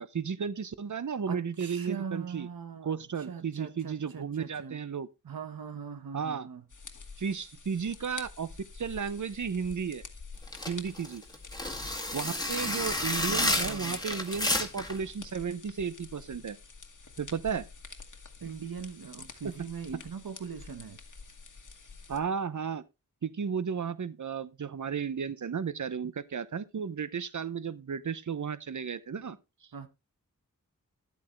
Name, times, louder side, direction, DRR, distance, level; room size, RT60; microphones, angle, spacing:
voice 1, 0.0-2.5 2.8-5.1 6.1-6.5 7.2-8.5 8.7-10.0 10.7-11.2 12.1-16.6 17.2-17.7 22.1-22.8 23.2-29.4, right 6 dB, 60° right, 0.8 m, -34 dB
voice 2, 1.3-4.8 5.2-6.6 12.6-12.7 13.1-14.0 18.4-21.0 29.7-29.9, right 6 dB, 80° right, 1.1 m, -41 dB
sound 1, 6.7-22.2, left 4 dB, 60° left, 1.5 m, -48 dB
sound 2, 10.5-15.0, left 1 dB, 10° left, 2.0 m, -31 dB
11.0 x 8.4 x 3.1 m
cardioid pair, 45°, 35 cm